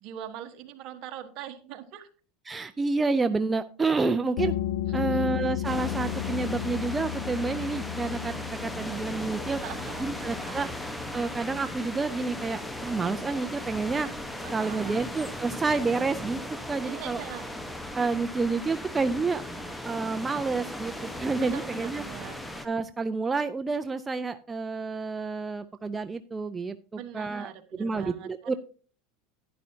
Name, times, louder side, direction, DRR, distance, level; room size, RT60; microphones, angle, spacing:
voice 1, 0.0-2.1 5.0-5.5 9.6-10.1 10.4-10.7 14.4-15.0 16.8-17.4 21.4-22.4 26.9-28.3, right 10 dB, 55° right, 7 dB, 1.4 m, -42 dB
voice 2, 2.5-4.5 4.9-8.3 8.6-9.6 10.0-10.7 11.1-14.1 14.5-16.4 16.7-17.2 17.9-19.4 19.8-22.0 22.6-28.5, right 4 dB, 20° right, 10 dB, 0.5 m, -29 dB
sound 1, 4.4-15.7, left 13 dB, 75° left, 0.4 m, -35 dB
sound 2, 5.6-22.7, left 1 dB, 5° left, 1.2 m, -37 dB
11.0 x 10.5 x 2.8 m, 0.39 s
supercardioid pair, 110°, 0 cm